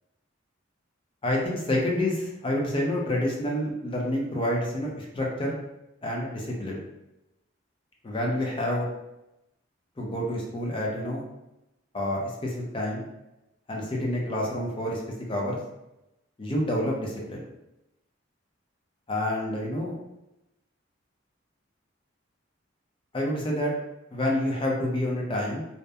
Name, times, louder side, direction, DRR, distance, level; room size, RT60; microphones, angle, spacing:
voice 1, 1.2-5.6 6.0-6.8 8.0-8.9 10.0-11.2 11.9-13.1 13.7-15.0 15.3-15.6 16.4-17.4 19.1-19.9 23.1-23.7 24.1-25.6, left 1 dB, 25° left, -2 dB, 0.5 m, -28 dB
2.7 x 2.1 x 2.2 m, 0.92 s
head